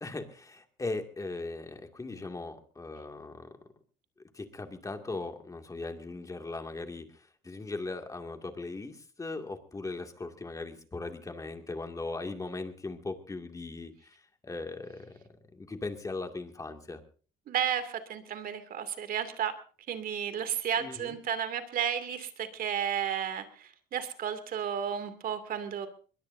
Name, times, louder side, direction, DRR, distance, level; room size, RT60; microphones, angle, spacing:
voice 1, 0.0-3.5 4.3-15.2 15.5-17.0 20.8-21.2, left 3 dB, 20° left, 5 dB, 2.3 m, -39 dB
voice 2, 17.5-19.5 19.9-25.9, right 9 dB, 60° right, 9 dB, 2.5 m, -33 dB
22.0 x 21.5 x 2.7 m, 0.40 s
cardioid pair, 110°, 17 cm